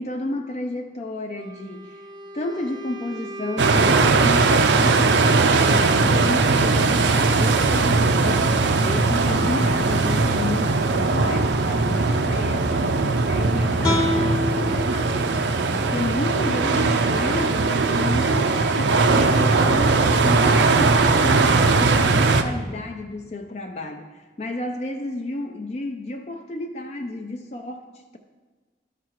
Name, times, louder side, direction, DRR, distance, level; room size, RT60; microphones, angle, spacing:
voice 1, 0.0-2.0 2.3-20.0 20.2-28.2, left 2 dB, 35° left, 4 dB, 0.4 m, -32 dB
Wind instrument woodwind instrument, 1.3-4.9, right 1 dB, 25° right, 0.4 m, -38 dB
sound 1, 3.6-22.4, right 3 dB, 80° right, 0.6 m, -19 dB
sound 2, 13.8-17.0, left 2 dB, 20° left, 1.0 m, -28 dB
12.0 x 5.9 x 4.6 m, 1.3 s
head